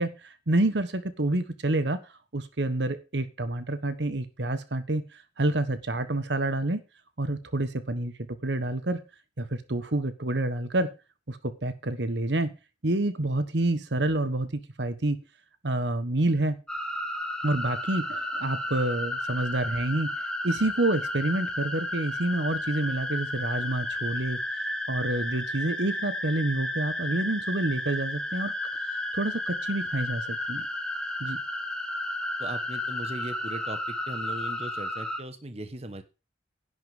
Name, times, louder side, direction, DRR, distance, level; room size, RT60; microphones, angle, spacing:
voice 1, 0.0-2.0 2.3-6.8 7.2-8.1 8.4-9.0 9.4-10.9 11.3-12.5 12.8-15.2 15.6-16.6 17.4-20.1 20.4-24.4 24.9-30.6 31.2-31.4, right 2 dB, 65° right, 11 dB, 1.3 m, -28 dB
sound 1, 16.7-35.2, left 1 dB, 5° left, 1.7 m, -33 dB
voice 2, 32.4-36.0, right 1 dB, 35° right, 9 dB, 1.3 m, -38 dB
11.0 x 5.6 x 8.0 m, 0.30 s
head